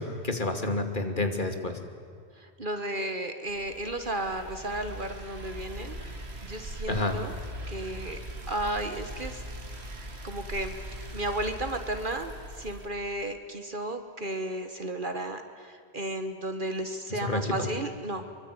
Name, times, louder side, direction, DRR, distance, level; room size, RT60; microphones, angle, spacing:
voice 1, 0.0-1.8 6.9-7.2 17.1-17.7, left 2 dB, 50° left, 6 dB, 2.6 m, -29 dB
voice 2, 2.4-7.3 7.7-8.2 8.5-9.4 10.2-10.7 11.0-18.3, right 1 dB, 50° right, 7 dB, 1.6 m, -34 dB
sound 1, 3.5-12.9, right 1 dB, 70° right, 2.7 m, -40 dB
24.5 x 23.5 x 9.8 m, 2.2 s
omnidirectional pair, 1.1 m